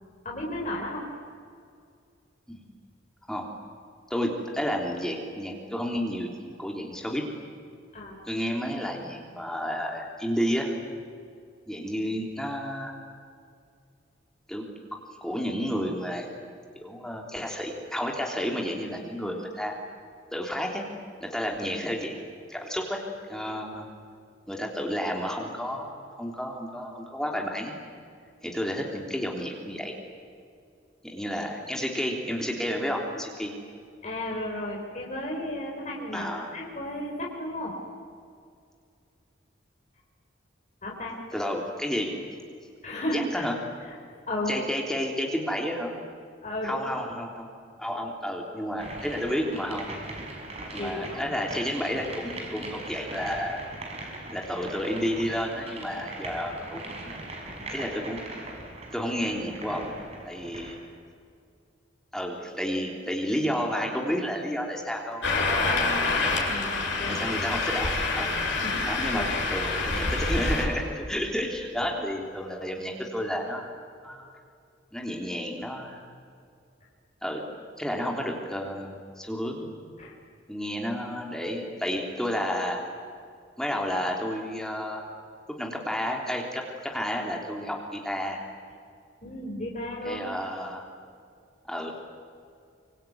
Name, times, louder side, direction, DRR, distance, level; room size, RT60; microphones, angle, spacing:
voice 1, 0.2-1.0 7.9-8.2 34.0-36.3 36.5-37.7 40.8-41.2 42.8-43.4 43.9-44.0 44.3-44.6 46.4-46.9 50.8-51.2 66.5-67.2 68.5-69.3 71.8-71.9 80.0-80.1 89.2-90.2, left 1 dB, 40° left, -2 dB, 4.2 m, -33 dB
voice 2, 4.1-6.3 6.6-7.2 8.2-10.7 11.7-12.9 14.5-14.7 15.2-16.3 16.8-19.7 20.3-20.8 21.2-22.1 22.5-23.0 23.3-23.9 24.5-27.7 28.4-29.9 31.0-33.5 36.1-36.6 41.3-42.2 43.1-43.6 44.5-45.9 46.6-47.5 47.8-49.9 50.7-53.6 54.3-57.2 57.7-58.2 58.9-59.9 60.2-60.8 62.1-65.5 67.1-68.4 68.8-73.6 74.0-74.3 74.9-76.0 77.2-77.4 77.8-79.7 80.5-82.8 83.6-85.1 85.6-88.5 90.0-90.8 91.6-91.9, equal, 5° left, 0 dB, 3.4 m, -31 dB
sound 1, 48.8-60.9, right 2 dB, 35° right, 5.5 m, -40 dB
sound 2, 65.2-70.7, left 3 dB, 70° left, 7.6 m, -27 dB
25.0 x 25.0 x 9.4 m, 2.3 s
head